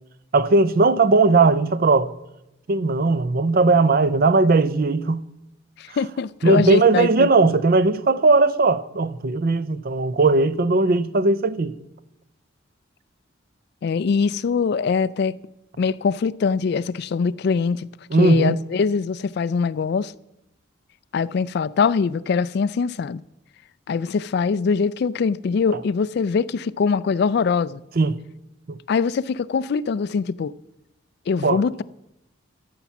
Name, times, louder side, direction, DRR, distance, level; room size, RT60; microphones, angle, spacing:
voice 1, 0.3-2.1 2.7-5.3 6.4-11.7 18.1-18.6 28.0-28.2 28.7-28.8 31.4-31.6, right 3 dB, 45° right, 0.5 m, -18 dB
voice 2, 5.8-7.3 13.8-15.4 15.8-17.9 18.2-20.1 21.1-23.2 23.9-27.8 28.9-30.5 31.3-31.8, left 5 dB, 55° left, 0.3 m, -22 dB
13.0 x 5.9 x 7.0 m
head